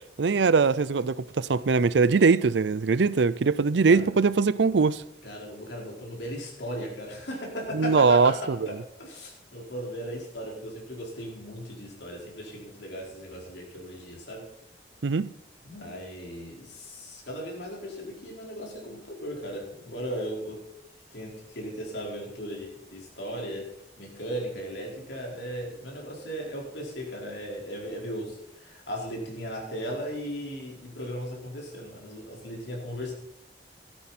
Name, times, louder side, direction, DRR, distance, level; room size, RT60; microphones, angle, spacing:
voice 1, 0.2-5.0 7.7-8.6 15.0-15.3, right 4 dB, 80° right, 0.5 m, -21 dB
voice 2, 5.2-14.5 15.6-20.7 21.1-23.7 24.0-33.1, equal, 80° left, 4.5 m, -37 dB
13.5 x 12.5 x 4.2 m
head